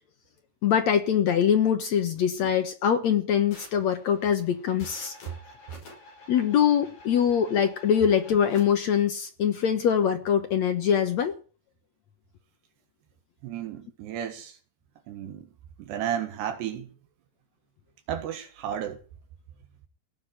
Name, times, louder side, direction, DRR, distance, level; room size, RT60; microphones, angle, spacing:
voice 1, 0.6-5.1 6.3-11.3, left 8 dB, 75° left, 1.6 m, -23 dB
sound 1, 3.5-8.6, left 2 dB, 45° left, 6.7 m, -49 dB
voice 2, 13.4-14.6 15.1-15.5 15.8-16.9 18.1-19.0, right 9 dB, 75° right, 3.7 m, -33 dB
17.5 x 7.3 x 10.0 m
omnidirectional pair, 4.9 m